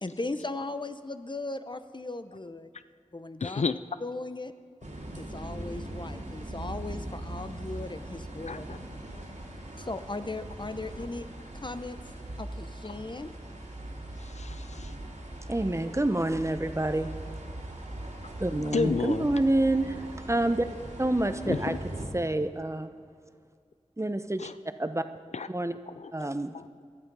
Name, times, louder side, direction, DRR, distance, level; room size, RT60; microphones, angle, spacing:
voice 1, 0.0-2.7 3.1-4.5 5.2-8.7 9.7-11.3 11.6-13.3 18.5-19.0, left 2 dB, 40° left, 10 dB, 0.9 m, -38 dB
voice 2, 3.4-3.7 8.4-8.8 9.1-9.2 14.2-14.9 18.7-19.3 21.5-21.8 24.4-24.5 25.3-25.5 25.9-26.1 26.5-26.9, left 4 dB, 65° left, 13 dB, 0.4 m, -31 dB
sound 1, 4.8-22.1, right 1 dB, 80° right, 2.9 m, -40 dB
voice 3, 15.5-17.1 18.4-20.7 21.0-21.8 22.1-22.9 24.0-24.4 24.8-25.0 25.5-25.7 26.1-26.5, right 1 dB, 25° right, 10 dB, 0.9 m, -27 dB
18.0 x 12.0 x 5.5 m, 2.2 s
wide cardioid pair, 40°, 12 cm